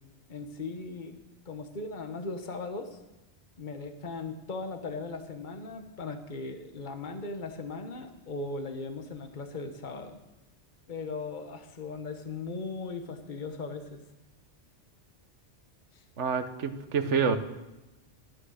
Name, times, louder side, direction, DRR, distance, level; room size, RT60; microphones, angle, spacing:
voice 1, 0.3-1.2 1.4-3.0 3.6-10.2 10.9-14.0 15.9-16.0, left 3 dB, 45° left, 6 dB, 1.3 m, -38 dB
voice 2, 16.2-17.4, right 6 dB, 80° right, 9 dB, 1.5 m, -27 dB
15.5 x 12.0 x 6.5 m, 1.0 s
omnidirectional pair, 1.2 m